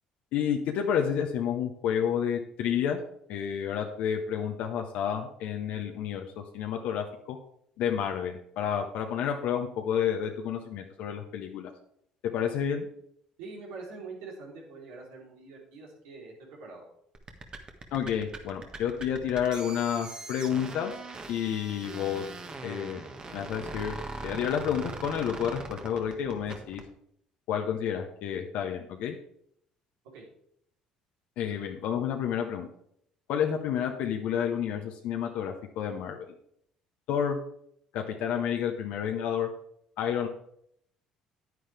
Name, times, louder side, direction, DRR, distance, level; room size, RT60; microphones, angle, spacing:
voice 1, 0.3-3.0 3.3-7.4 7.8-11.7 12.3-12.9 17.9-20.9 21.3-22.2 22.6-23.0 23.3-26.8 27.5-29.2 31.4-32.7 33.3-36.3 37.1-37.4 37.9-39.5 40.0-40.3, left 8 dB, 70° left, 3 dB, 0.9 m, -30 dB
voice 2, 13.4-16.8 30.0-30.2, right 4 dB, 85° right, -2 dB, 3.4 m, -44 dB
sound 1, 17.1-26.9, right 3 dB, 35° right, 1.5 m, -41 dB
9.5 x 9.4 x 3.4 m, 0.70 s
supercardioid pair, 75°, 2 cm